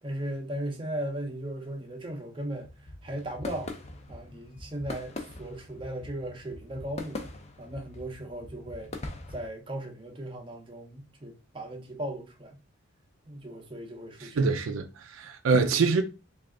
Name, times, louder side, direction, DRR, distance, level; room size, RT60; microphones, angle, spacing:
voice 1, 0.0-2.7 3.0-3.7 4.1-7.2 7.6-8.9 9.3-12.6 13.3-14.6, right 1 dB, 25° right, 0.6 m, -37 dB
sound 1, 2.6-9.5, left 2 dB, 30° left, 0.5 m, -42 dB
voice 2, 14.2-16.0, right 4 dB, 70° right, 0.4 m, -25 dB
3.3 x 2.4 x 3.6 m
head